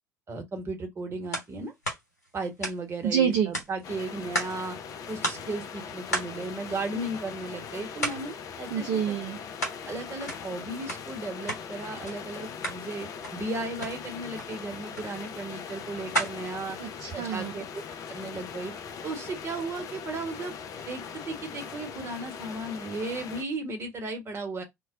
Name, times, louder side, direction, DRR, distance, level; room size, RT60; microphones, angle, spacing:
voice 1, 0.3-1.7 2.3-4.8 5.1-8.8 9.9-16.8 17.1-17.8 18.1-18.7 19.0-20.5 20.9-24.6, right 2 dB, 30° right, 1.0 m, -35 dB
sound 1, 1.3-1.5 1.8-3.1 3.5-4.7 5.0-5.1 5.2-5.6 6.1-7.5 8.0-8.3 8.7-9.8 10.1-11.7 12.0-12.2 12.5-12.8 13.2-13.4 13.8-14.0 14.3-14.5 14.9-15.1 15.6-17.4, right 1 dB, 75° left, 0.9 m, -34 dB
voice 2, 3.0-3.5 8.7-9.4 16.8-17.5, right 8 dB, 50° right, 0.4 m, -27 dB
sound 2, 3.8-23.4, left 6 dB, 40° left, 0.4 m, -40 dB
2.2 x 2.0 x 3.7 m
figure-of-eight pair, 60°, 9 cm